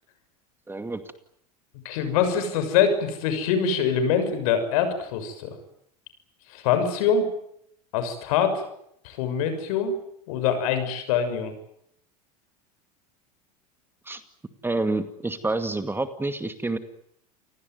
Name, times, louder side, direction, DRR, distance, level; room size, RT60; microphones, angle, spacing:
voice 1, 0.7-1.0 14.1-14.2 14.6-16.8, right 2 dB, 10° right, 9 dB, 2.2 m, -28 dB
voice 2, 1.8-5.6 6.5-7.3 7.9-8.6 9.0-10.0 10.3-11.5, left 7 dB, 65° left, 9 dB, 6.7 m, -24 dB
29.0 x 19.0 x 9.5 m, 0.73 s
hypercardioid pair, 90°, 20 cm